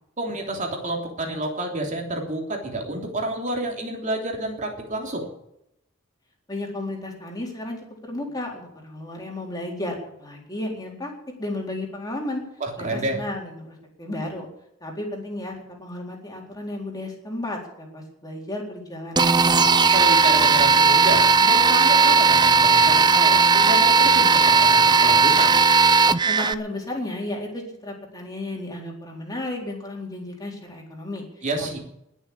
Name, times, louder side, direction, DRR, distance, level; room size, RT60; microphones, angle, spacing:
voice 1, 0.2-5.3 12.6-13.2 19.9-25.6 31.4-31.8, right 2 dB, 40° right, 2 dB, 3.2 m, -29 dB
voice 2, 6.5-11.1 11.4-12.4 12.8-14.5 14.8-19.6 26.3-31.2 31.6-31.8, left 1 dB, 20° left, 0 dB, 4.1 m, -33 dB
sound 1, 19.2-26.5, right 4 dB, 20° right, 0.6 m, -16 dB
20.0 x 7.3 x 8.6 m, 0.80 s
head